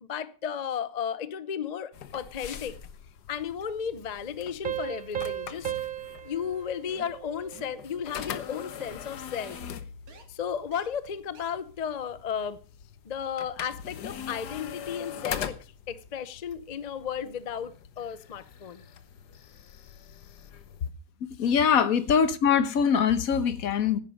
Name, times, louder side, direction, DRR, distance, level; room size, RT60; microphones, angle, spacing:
voice 1, 0.0-2.8 3.3-5.7 6.2-9.6 10.3-12.6 13.0-18.8, left 8 dB, 45° left, 0.5 m, -34 dB
sound 1, 1.9-20.9, left 8 dB, 80° left, 1.6 m, -42 dB
Piano, 4.6-7.9, right 11 dB, 40° right, 0.7 m, -36 dB
sound 2, 6.9-7.2 7.5-7.8 8.2-8.5 8.8-9.0 9.4-9.6 10.1-10.2 10.7-10.9 11.3-11.5, right 5 dB, 60° right, 2.2 m, -50 dB
voice 2, 21.4-24.0, left 7 dB, 60° left, 1.3 m, -23 dB
10.5 x 9.2 x 6.4 m
omnidirectional pair, 1.7 m